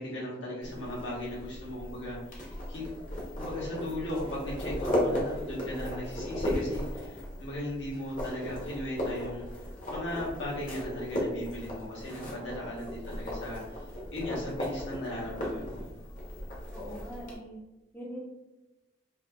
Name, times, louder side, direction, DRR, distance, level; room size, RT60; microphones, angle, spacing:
voice 1, 0.0-2.9 3.4-9.5 9.9-13.6 14.1-15.8, left 1 dB, 75° left, -5 dB, 1.0 m, -37 dB
sound 1, 0.6-17.4, left 1 dB, 45° left, 0.7 m, -36 dB
voice 2, 16.7-17.6 17.9-18.2, equal, 10° left, -6 dB, 0.4 m, -42 dB
2.7 x 2.6 x 2.2 m, 1.0 s
head